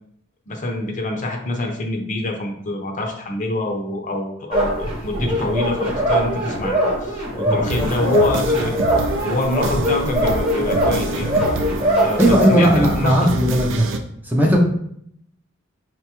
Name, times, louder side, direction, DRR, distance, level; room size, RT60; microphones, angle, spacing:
voice 1, 0.5-8.7 9.2-11.3 12.0-13.3 13.6-13.7, left 2 dB, 40° left, 2 dB, 0.5 m, -25 dB
sound 1, 4.5-12.5, right 1 dB, 25° right, 0.9 m, -22 dB
voice 2, 7.5-7.9 12.2-13.8 14.2-14.6, equal, 10° right, -1 dB, 0.4 m, -17 dB
sound 2, 7.6-14.0, right 2 dB, 75° right, 0.4 m, -26 dB
5.1 x 2.2 x 2.8 m, 0.71 s
head